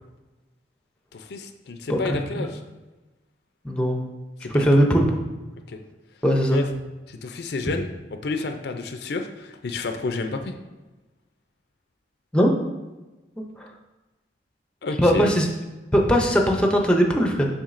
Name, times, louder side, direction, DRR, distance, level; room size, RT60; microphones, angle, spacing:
voice 1, 1.1-2.6 4.4-4.8 5.7-5.8 6.5-6.7 7.1-7.9 8.2-10.5 14.8-15.3, left 3 dB, 60° left, 6 dB, 0.4 m, -30 dB
voice 2, 3.6-4.0 4.5-5.2 6.2-6.6 12.3-12.5 13.4-13.7 15.0-15.5 15.9-17.5, equal, 5° left, 1 dB, 0.5 m, -19 dB
7.1 x 5.3 x 2.5 m, 1.1 s
head